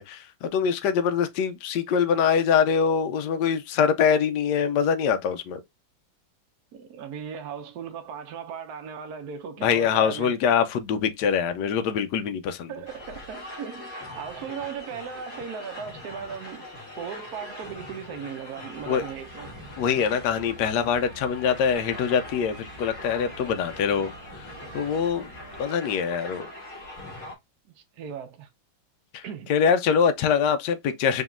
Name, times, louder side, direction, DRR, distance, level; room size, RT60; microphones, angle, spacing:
voice 1, 0.0-5.6 9.6-12.7 18.9-19.0 19.8-24.1 24.7-25.3 25.6-26.5 29.1-29.2 29.5-31.2, left 7 dB, 70° left, 1.1 m, -24 dB
voice 2, 6.7-10.3 12.7-16.6 17.0-19.5 27.8-28.5 29.2-29.5, right 7 dB, 65° right, 1.1 m, -37 dB
sound 1, 12.9-27.3, left 1 dB, 45° left, 2.4 m, -42 dB
sound 2, 18.7-25.6, right 2 dB, 50° right, 0.4 m, -48 dB
5.0 x 2.8 x 2.4 m
omnidirectional pair, 2.1 m